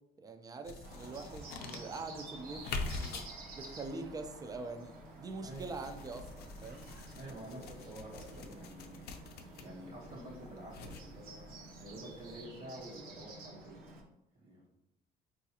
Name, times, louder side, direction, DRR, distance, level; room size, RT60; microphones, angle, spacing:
voice 1, 0.2-2.7 3.0-3.2 3.5-6.9, right 3 dB, 20° right, 7 dB, 0.3 m, -44 dB
sound 1, 0.6-12.4, left 3 dB, 70° left, 0.5 m, -46 dB
Bird, 0.8-14.0, right 2 dB, 60° right, 0.7 m, -51 dB
voice 2, 7.2-9.3 9.6-13.8 14.3-14.7, right 1 dB, 90° right, -5 dB, 1.0 m, -49 dB
3.8 x 2.4 x 2.8 m, 0.93 s
cardioid pair, 110°, 17 cm